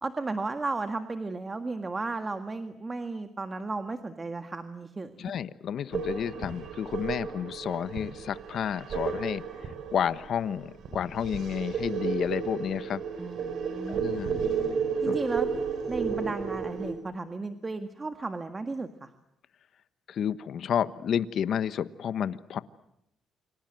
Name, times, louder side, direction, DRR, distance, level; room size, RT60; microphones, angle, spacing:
voice 1, 0.0-5.3 13.2-14.0 15.0-15.5 15.9-19.1, right 3 dB, 25° right, 8 dB, 1.8 m, -34 dB
voice 2, 5.2-9.4 9.9-13.0 13.9-14.4 15.0-15.2 20.1-22.6, left 8 dB, 65° left, 14 dB, 1.2 m, -31 dB
sound 1, 5.9-16.9, right 6 dB, 70° right, 5.7 m, -33 dB
29.0 x 25.0 x 7.8 m, 0.79 s
cardioid pair, 90°, 0 cm